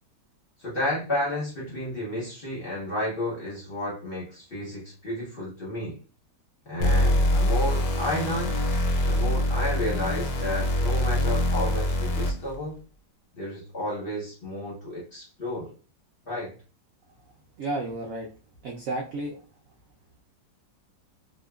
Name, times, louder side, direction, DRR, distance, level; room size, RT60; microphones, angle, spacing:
voice 1, 0.6-6.0 6.7-8.6 9.1-12.8 13.3-15.7 16.3-16.5, left 1 dB, 45° left, -6 dB, 0.8 m, -32 dB
sound 1, 6.8-12.5, left 1 dB, 85° left, 1.2 m, -24 dB
voice 2, 17.6-18.3 18.6-19.3, right 2 dB, 75° right, 0 dB, 0.7 m, -31 dB
2.7 x 2.3 x 2.2 m, 0.35 s
omnidirectional pair, 1.9 m